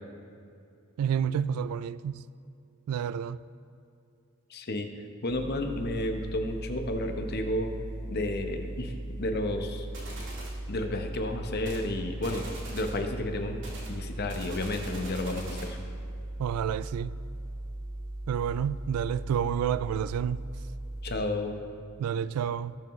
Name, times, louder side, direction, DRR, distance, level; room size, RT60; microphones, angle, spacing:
voice 1, 1.0-2.3 2.9-3.4 16.4-17.2 18.3-20.5 22.0-22.7, right 8 dB, 85° right, 0.3 m, -29 dB
voice 2, 4.5-4.9 5.2-7.7 8.1-8.9 9.2-9.8 10.7-12.5 12.7-13.6 13.9-15.8 21.0-21.6, left 1 dB, 45° left, 0.9 m, -31 dB
sound 1, 5.3-21.2, right 1 dB, 40° right, 2.1 m, -38 dB
sound 2, 9.9-10.6 11.6-11.9 12.2-13.0 13.6-15.8, right 1 dB, 55° right, 2.3 m, -43 dB
19.5 x 7.0 x 3.1 m
head